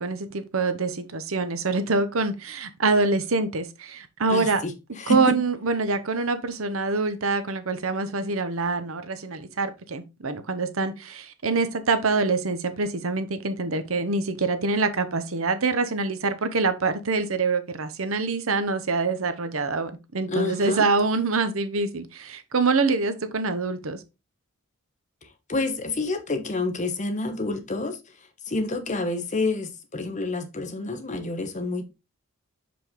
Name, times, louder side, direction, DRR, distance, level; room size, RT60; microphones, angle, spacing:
voice 1, 0.0-4.6 5.1-24.0, right 3 dB, 70° right, 0.9 m, -25 dB
voice 2, 4.3-5.4 20.3-20.9 25.5-28.0 28.5-31.8, left 3 dB, 35° left, 1.0 m, -28 dB
6.2 x 5.1 x 3.7 m
head